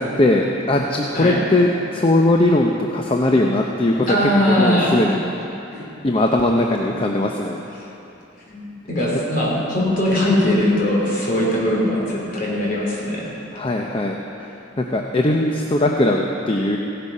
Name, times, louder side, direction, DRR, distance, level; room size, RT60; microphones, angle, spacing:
voice 1, 0.0-5.2 6.0-7.6 13.5-16.8, left 1 dB, 30° left, 1 dB, 0.6 m, -19 dB
voice 2, 4.1-5.0 5.7-5.9 8.5-13.3, left 1 dB, 50° left, -5 dB, 3.4 m, -20 dB
16.5 x 8.4 x 5.4 m, 3.0 s
head